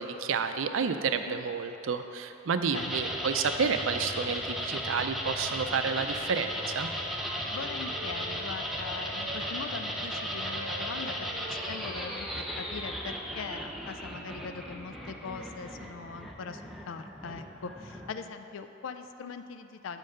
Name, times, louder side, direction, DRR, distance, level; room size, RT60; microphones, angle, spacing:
voice 1, 0.0-6.9, right 5 dB, 80° right, 8 dB, 0.4 m, -30 dB
sound 1, 2.7-18.3, equal, ahead, 0.6 m, -36 dB
Wind instrument woodwind instrument, 5.9-9.6 9.9-13.8, right 2 dB, 20° right, 1.2 m, -46 dB
voice 2, 7.5-16.6 16.9-20.0, left 5 dB, 80° left, 9 dB, 0.4 m, -41 dB
7.7 x 4.7 x 6.4 m, 3.0 s
head